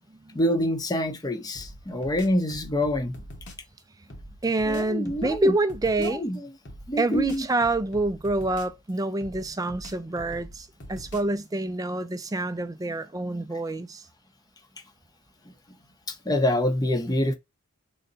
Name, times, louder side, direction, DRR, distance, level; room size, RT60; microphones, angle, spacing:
voice 1, 0.3-3.1 4.7-5.5 6.0-6.5 6.9-7.4 16.1-17.3, left 1 dB, 15° left, 0.7 m, -26 dB
sound 1, 1.5-3.7 4.1-6.2 6.6-8.9 9.2-11.4, equal, 55° left, 1.1 m, -44 dB
voice 2, 4.4-6.2 7.0-14.1, right 2 dB, 15° right, 0.4 m, -27 dB
3.9 x 2.1 x 3.9 m
head